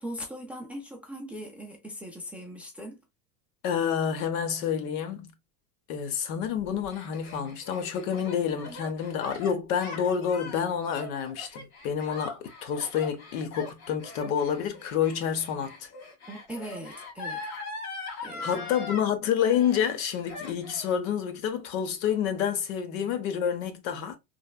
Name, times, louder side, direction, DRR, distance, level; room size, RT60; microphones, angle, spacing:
voice 1, 0.0-3.0 8.7-8.8 16.3-17.5 18.2-18.6, equal, 5° right, 0.4 m, -40 dB
voice 2, 3.6-5.3 5.9-15.9 18.4-24.2, left 8 dB, 70° left, 0.8 m, -28 dB
Gasp, 6.6-19.0 19.4-20.0 20.2-20.9, left 3 dB, 90° left, 1.6 m, -41 dB
3.2 x 2.3 x 2.2 m
supercardioid pair, 130°, 43 cm